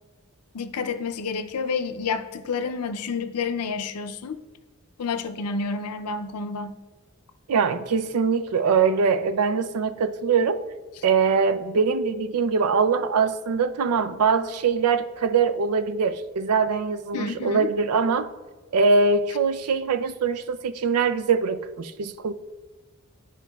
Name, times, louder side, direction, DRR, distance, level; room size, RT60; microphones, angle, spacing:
voice 1, 0.5-4.4 5.0-6.8 17.1-17.7, left 5 dB, 85° left, 0.5 m, -29 dB
voice 2, 7.5-10.6 11.0-18.3 18.7-22.3, right 5 dB, 85° right, 0.4 m, -22 dB
11.0 x 4.6 x 2.3 m
head